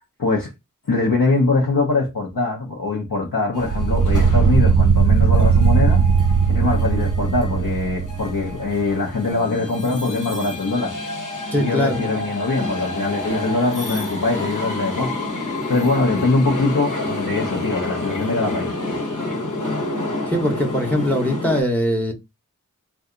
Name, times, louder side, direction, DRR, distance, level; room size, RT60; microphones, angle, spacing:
voice 1, 0.2-0.5 0.9-6.0 6.5-11.0 11.5-15.1 15.7-18.8, left 3 dB, 80° left, 0.8 m, -22 dB
sound 1, 3.5-21.6, left 2 dB, 65° left, 1.1 m, -29 dB
sound 2, 3.6-8.9, right 5 dB, 45° right, 0.4 m, -18 dB
voice 2, 11.5-12.1 20.3-22.1, equal, 5° left, 0.7 m, -21 dB
2.7 x 2.3 x 3.7 m
wide cardioid pair, 50°, 33 cm